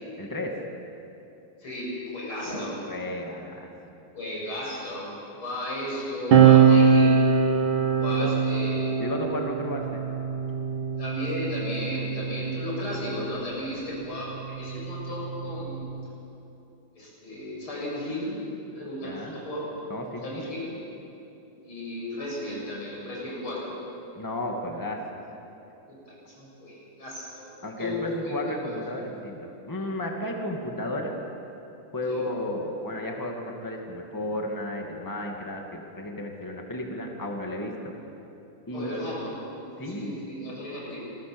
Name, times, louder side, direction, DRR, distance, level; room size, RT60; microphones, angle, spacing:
voice 1, 0.2-0.5 2.9-3.7 8.2-8.3 9.0-10.1 19.0-19.3 19.9-20.4 24.2-25.0 27.6-31.1 31.9-37.9 38.7-38.9 39.8-40.3, left 1 dB, 10° left, 1 dB, 2.3 m, -33 dB
voice 2, 1.6-2.9 4.1-7.3 8.0-9.0 11.0-15.8 16.9-18.4 18.7-19.7 20.2-20.8 21.6-23.8 25.9-26.0 26.3-28.8 32.1-32.2 38.7-39.5 39.8-41.0, left 1 dB, 85° left, -4 dB, 7.9 m, -34 dB
sound 1, 6.3-13.2 14.2-16.0, right 6 dB, 70° right, 2.1 m, -22 dB
27.0 x 21.5 x 7.1 m, 2.9 s
omnidirectional pair, 2.3 m